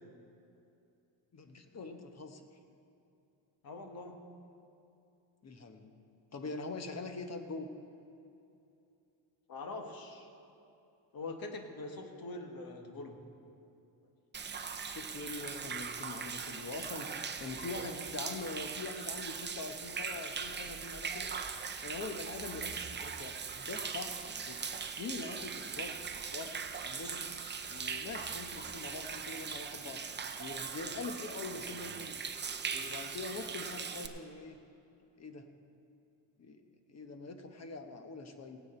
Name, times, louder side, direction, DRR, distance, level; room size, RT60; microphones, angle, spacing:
voice 1, 1.3-2.4 5.4-5.9 6.3-7.7 14.9-21.3 21.8-24.6 25.0-26.0 26.3-27.3 27.7-30.0 30.4-32.2 32.7-34.6 35.2-35.5 36.4-36.6 36.9-38.6, left 3 dB, 35° left, 7 dB, 1.0 m, -43 dB
voice 2, 3.6-4.2 9.5-10.3 11.1-13.2, left 2 dB, 50° left, 4 dB, 1.5 m, -43 dB
Human voice / Rain / Stream, 14.3-34.1, right 6 dB, 25° right, 0.7 m, -40 dB
17.0 x 9.1 x 4.4 m, 2.7 s
cardioid pair, 105°, 45 cm